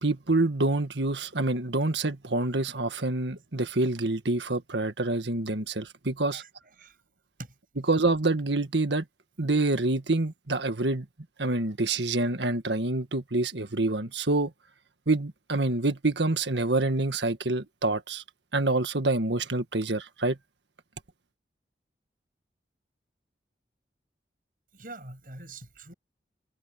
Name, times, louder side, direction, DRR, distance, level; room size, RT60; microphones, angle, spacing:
voice 1, 0.0-6.4 7.9-9.0 9.4-11.1 11.4-14.5 15.1-18.2 18.5-20.4, right 2 dB, 80° right, 1.7 m, -27 dB
voice 2, 24.7-25.9, right 2 dB, 50° right, 7.3 m, -44 dB
head